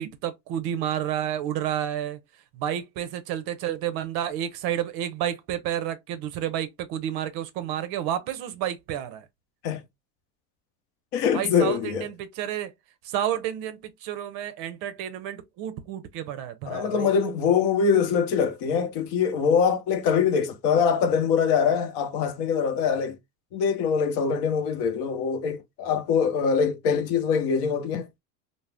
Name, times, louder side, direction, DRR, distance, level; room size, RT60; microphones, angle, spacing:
voice 1, 0.0-2.2 2.5-9.3 11.3-12.7 13.0-17.1, right 10 dB, 50° right, 0.6 m, -30 dB
voice 2, 11.1-12.1 16.6-23.2 23.5-28.1, left 6 dB, 55° left, 0.8 m, -23 dB
2.4 x 2.0 x 3.2 m
supercardioid pair, 110°, 50 cm